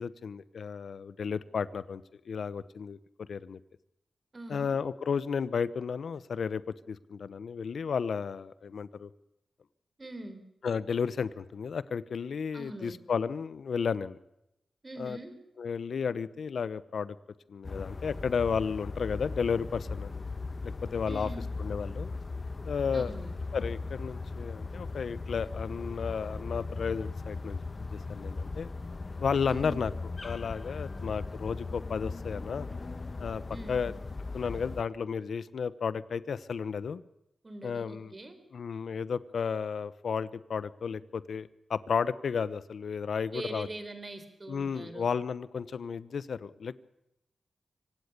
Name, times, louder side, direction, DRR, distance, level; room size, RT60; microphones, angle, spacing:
voice 1, 0.0-3.6 4.5-6.6 6.9-9.1 10.6-14.2 15.0-15.2 15.6-17.2 17.5-20.1 20.6-21.3 21.6-22.1 22.6-23.2 23.5-27.6 27.9-28.7 29.2-29.9 30.2-32.7 33.2-33.4 33.7-33.9 34.3-37.0 37.6-38.1 38.5-43.7 44.5-46.8, left 6 dB, 70° left, 17 dB, 0.9 m, -33 dB
voice 2, 4.3-4.8 10.0-10.4 12.5-13.0 14.8-15.4 21.1-21.5 22.9-23.3 29.5-29.9 33.5-33.8 37.4-38.4 43.3-45.1, right 1 dB, 25° right, 9 dB, 4.0 m, -43 dB
sound 1, 17.6-34.8, left 3 dB, 35° left, 1.1 m, -38 dB
25.5 x 17.0 x 6.8 m, 0.83 s
wide cardioid pair, 115°, 0 cm